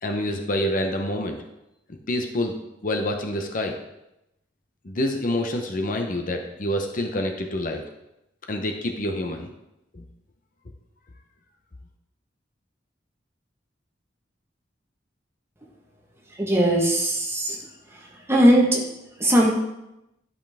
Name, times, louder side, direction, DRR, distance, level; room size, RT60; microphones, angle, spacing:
voice 1, 0.0-1.4 2.1-2.5 2.8-3.8 4.8-7.8 8.5-9.5 9.9-10.0, left 1 dB, 50° left, 4 dB, 0.8 m, -27 dB
voice 2, 16.4-17.6 18.3-18.8 19.2-19.5, right 1 dB, 15° right, -1 dB, 1.3 m, -19 dB
11.5 x 5.5 x 3.5 m, 0.89 s
head